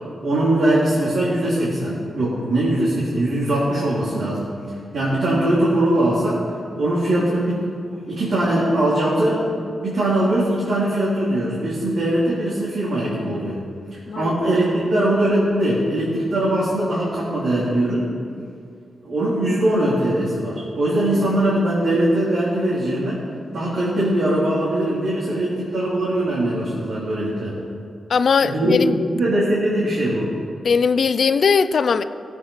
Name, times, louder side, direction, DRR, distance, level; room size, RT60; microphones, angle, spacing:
voice 1, 0.2-4.5 4.9-6.4 6.7-9.4 9.8-13.6 13.9-18.1 19.0-23.2 23.5-27.5 28.4-28.9 29.1-30.3, right 1 dB, 70° right, -8 dB, 3.2 m, -21 dB
voice 2, 28.1-29.0 30.6-32.0, left 5 dB, 60° left, 12 dB, 0.5 m, -19 dB
17.0 x 8.3 x 5.5 m, 2.3 s
wide cardioid pair, 105°, 0 cm